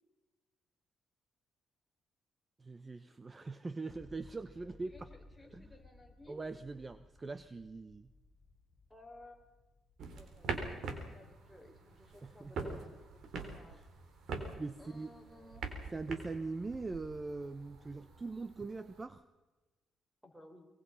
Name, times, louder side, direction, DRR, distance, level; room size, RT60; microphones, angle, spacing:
voice 1, 2.6-5.1 5.5-5.7 6.3-8.1 12.2-12.8 13.7-13.9 14.6-15.1 15.9-19.2, right 3 dB, 25° right, 13 dB, 0.9 m, -42 dB
sound 1, 3.9-11.4, left 3 dB, 25° left, 7.9 m, -60 dB
voice 2, 4.8-6.4 8.9-9.4 10.1-12.9 13.1-13.9 14.8-15.7 20.2-20.7, left 1 dB, ahead, 0 dB, 5.2 m, -58 dB
sound 2, 10.0-19.0, right 4 dB, 70° right, 3.9 m, -44 dB
24.0 x 22.5 x 5.6 m, 1.2 s
cardioid pair, 90°, 0 cm